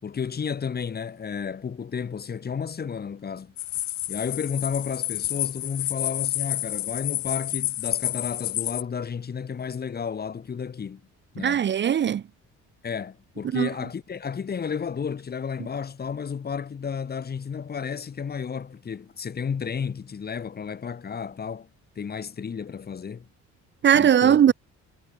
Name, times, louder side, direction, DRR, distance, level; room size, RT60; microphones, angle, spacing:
voice 1, 0.0-3.5 4.1-11.0 11.3-11.6 12.8-21.7 22.0-23.3 23.9-24.4, left 6 dB, 30° left, 5.2 m, -32 dB
sound 1, 3.6-8.8, left 15 dB, 70° left, 1.6 m, -29 dB
voice 2, 11.4-12.2 13.5-13.7 23.8-24.5, right 9 dB, 40° right, 1.0 m, -19 dB
cardioid pair, 150°, 30 cm